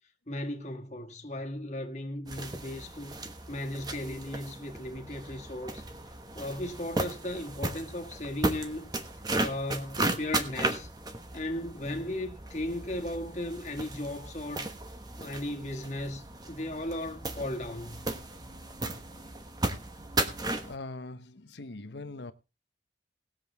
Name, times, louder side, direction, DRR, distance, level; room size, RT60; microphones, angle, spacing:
voice 1, 0.3-3.2 3.5-5.8 6.3-8.9 9.4-10.9 11.3-14.7 15.2-18.1, left 1 dB, 40° left, 1.7 m, -36 dB
sound 1, 2.3-20.8, right 2 dB, 20° right, 1.2 m, -36 dB
voice 2, 20.6-22.3, left 2 dB, 75° left, 1.0 m, -41 dB
20.0 x 7.7 x 3.5 m
head